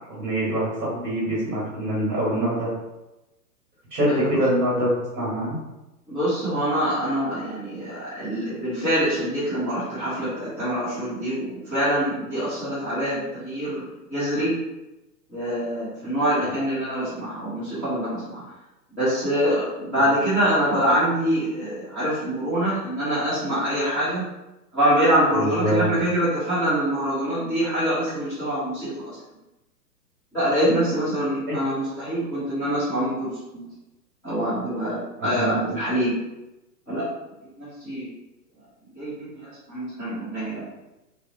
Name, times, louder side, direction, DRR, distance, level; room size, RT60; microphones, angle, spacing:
voice 1, 0.1-2.7 3.9-5.5 16.4-16.5 25.3-25.9 31.5-31.6 35.2-35.7, right 1 dB, 25° right, -7 dB, 1.4 m, -24 dB
voice 2, 4.1-4.4 6.1-14.5 15.3-18.4 19.0-24.2 24.7-29.2 30.3-33.3 33.5-33.7 34.2-36.1 36.9-37.1 37.6-38.1 39.0-40.6, equal, 5° left, -17 dB, 0.7 m, -25 dB
2.7 x 2.0 x 2.6 m, 0.99 s
hypercardioid pair, 130°, 49 cm